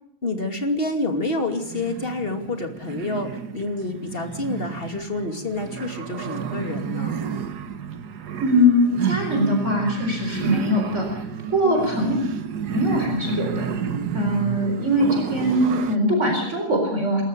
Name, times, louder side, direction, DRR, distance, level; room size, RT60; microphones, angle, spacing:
voice 1, 0.2-7.2 11.6-11.9, left 2 dB, 35° left, 4 dB, 2.9 m, -28 dB
sound 1, 1.3-16.0, right 7 dB, 75° right, 1.8 m, -31 dB
voice 2, 8.4-11.1 11.4-12.1 12.7-13.7 14.1-17.2, equal, 45° right, 2 dB, 4.5 m, -21 dB
27.0 x 14.0 x 6.9 m, 0.78 s
omnidirectional pair, 1.7 m